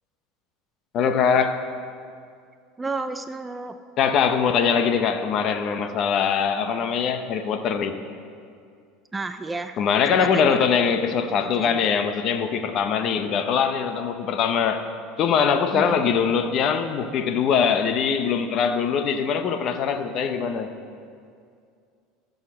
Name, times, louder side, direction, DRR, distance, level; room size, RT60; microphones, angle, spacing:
voice 1, 0.9-1.7 4.0-8.0 9.8-14.8 15.2-20.7, left 6 dB, 50° left, 0.9 m, -22 dB
voice 2, 2.8-3.8 9.1-10.7 11.4-11.9 15.7-16.0, right 3 dB, 15° right, 0.5 m, -32 dB
14.5 x 6.6 x 6.1 m
supercardioid pair, 110°, 0 cm